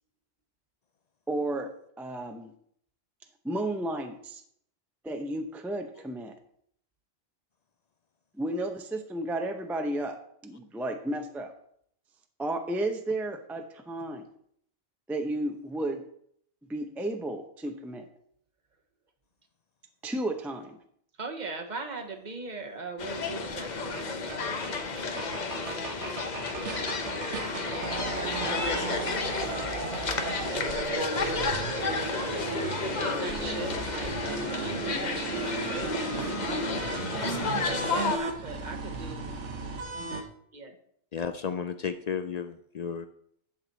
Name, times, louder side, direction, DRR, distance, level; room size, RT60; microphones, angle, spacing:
voice 1, 1.3-1.7 2.0-2.5 3.4-4.4 5.0-6.3 8.3-11.5 12.4-14.2 15.1-16.0 16.6-18.0 20.0-20.8 29.1-29.3, right 1 dB, ahead, 5 dB, 0.5 m, -33 dB
voice 2, 21.2-39.4 40.5-40.8, right 3 dB, 40° right, 5 dB, 1.1 m, -40 dB
sound 1, 23.0-38.2, left 4 dB, 45° left, 0.8 m, -32 dB
sound 2, 24.0-24.1 24.3-24.4 24.6-24.7 25.0-40.2, right 4 dB, 80° right, 1.4 m, -35 dB
voice 3, 41.1-43.1, left 6 dB, 60° left, 9 dB, 0.4 m, -33 dB
10.5 x 6.0 x 4.0 m, 0.68 s
omnidirectional pair, 1.2 m